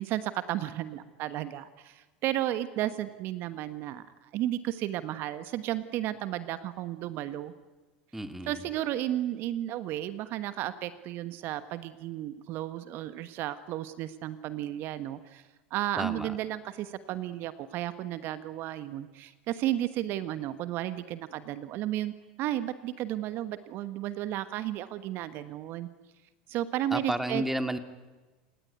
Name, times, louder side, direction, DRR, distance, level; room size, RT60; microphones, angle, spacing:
voice 1, 0.0-7.5 8.4-15.4 15.7-25.9 26.5-27.4, right 13 dB, 50° right, 13 dB, 1.3 m, -33 dB
voice 2, 8.1-8.6 16.0-16.4 26.9-27.8, right 1 dB, 5° right, 10 dB, 2.1 m, -32 dB
28.5 x 18.0 x 9.5 m, 1.2 s
hypercardioid pair, 85°, 5 cm